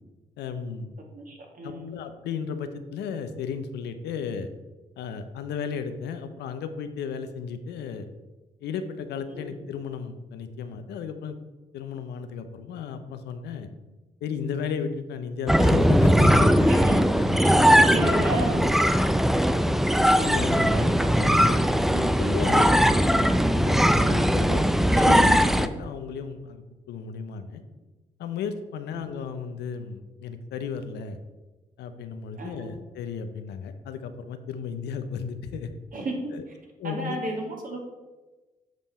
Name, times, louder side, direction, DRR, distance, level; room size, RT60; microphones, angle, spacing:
voice 1, 0.4-1.0 1.6-4.5 5.0-8.1 8.6-11.4 11.7-13.7 14.2-16.7 17.2-17.7 19.6-21.7 22.2-24.7 24.9-26.6 26.9-27.6 28.2-31.2 31.8-35.7 36.3-36.5 36.8-37.2, left 6 dB, 75° left, 9 dB, 0.6 m, -34 dB
voice 2, 1.1-2.0 9.3-9.4 16.7-17.0 17.3-18.6 20.7-20.9 21.9-22.0 24.9-25.5 28.9-29.0 32.4-32.7 35.9-36.3 36.8-37.8, right 2 dB, 55° right, 1 dB, 2.0 m, -32 dB
sound 1, 15.5-25.7, equal, ahead, 0.4 m, -20 dB
7.6 x 5.3 x 4.2 m, 1.2 s
supercardioid pair, 50°, 17 cm